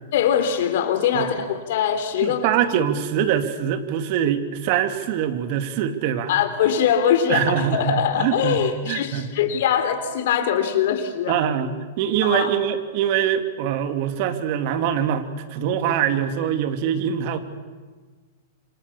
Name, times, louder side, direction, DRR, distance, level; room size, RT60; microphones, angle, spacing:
voice 1, 0.1-2.5 6.3-11.4 12.2-12.6, left 8 dB, 65° left, 8 dB, 3.9 m, -22 dB
voice 2, 2.2-6.3 7.3-9.3 11.3-17.4, right 9 dB, 55° right, 8 dB, 2.7 m, -23 dB
28.0 x 25.5 x 7.1 m, 1.4 s
hypercardioid pair, 120°, 0 cm